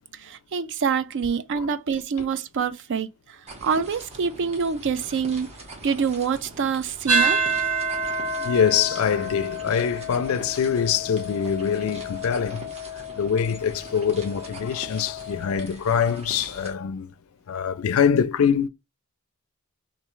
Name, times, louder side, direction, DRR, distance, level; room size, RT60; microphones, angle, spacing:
voice 1, 0.2-3.1 3.6-5.5 5.8-7.4, right 6 dB, 55° right, 0.4 m, -26 dB
sound 1, 3.5-16.7, right 2 dB, 30° right, 0.9 m, -43 dB
sound 2, 7.1-15.6, right 3 dB, 85° right, 1.0 m, -29 dB
voice 2, 8.4-12.6 13.2-17.1 17.5-18.7, left 7 dB, 65° left, 0.4 m, -24 dB
3.1 x 2.6 x 3.0 m
head